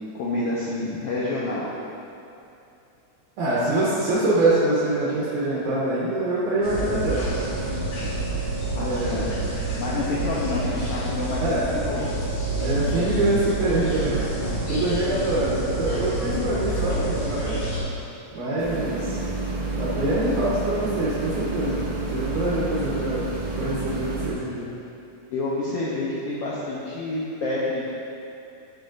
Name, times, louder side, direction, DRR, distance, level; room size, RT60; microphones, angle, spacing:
voice 1, 0.1-1.7 8.7-12.1 25.3-27.9, left 2 dB, 85° left, -7 dB, 1.3 m, -28 dB
voice 2, 3.4-7.2 8.8-9.3 11.4-11.7 12.6-14.3 14.7-17.6 18.3-19.2 19.7-21.8 22.1-23.3 23.6-24.7, right 2 dB, 75° right, -8 dB, 2.5 m, -24 dB
sound 1, 6.6-17.8, right 2 dB, 55° left, 1.8 m, -28 dB
sound 2, 18.6-24.3, right 2 dB, 55° right, 1.7 m, -29 dB
12.0 x 5.2 x 2.5 m, 2.7 s
omnidirectional pair, 3.7 m